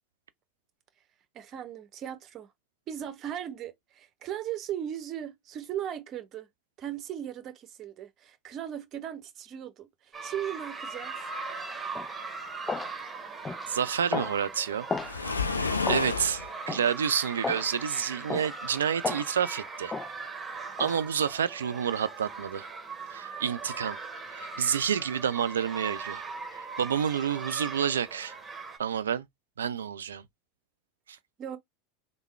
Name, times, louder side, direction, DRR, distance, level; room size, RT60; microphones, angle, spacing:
voice 1, 1.3-2.5 2.9-6.5 6.8-11.1 31.4-31.6, right 10 dB, 40° right, 0.8 m, -37 dB
sound 1, 10.1-28.8, right 4 dB, 20° right, 1.4 m, -40 dB
sound 2, 11.9-12.1 12.7-12.9 13.4-13.7 14.1-14.3 14.9-15.1 15.8-16.1 16.7-16.9 17.4-17.7 18.3-18.5 19.0-19.3 19.9-20.1 20.8-21.0, left 4 dB, 20° left, 0.4 m, -33 dB
voice 2, 13.7-14.9 15.9-19.9 20.8-22.7 23.1-24.0 24.3-26.2 26.5-28.3 28.8-29.3 29.6-30.2, right 8 dB, 80° right, 0.4 m, -29 dB
Waves surf, 15.0-16.5, left 4 dB, 90° left, 0.4 m, -29 dB
3.6 x 2.2 x 3.2 m
figure-of-eight pair, 85°, 0 cm